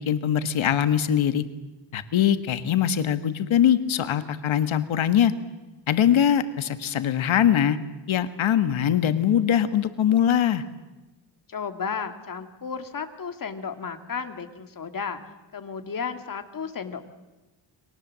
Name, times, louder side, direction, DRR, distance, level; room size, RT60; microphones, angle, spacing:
voice 1, 0.0-1.4 1.9-5.3 5.9-7.8 8.1-10.6, left 9 dB, 90° left, 11 dB, 1.6 m, -22 dB
voice 2, 11.5-15.2 15.5-17.0, left 6 dB, 45° left, 7 dB, 2.1 m, -33 dB
30.0 x 23.5 x 7.5 m, 1.1 s
wide cardioid pair, 155°, 46 cm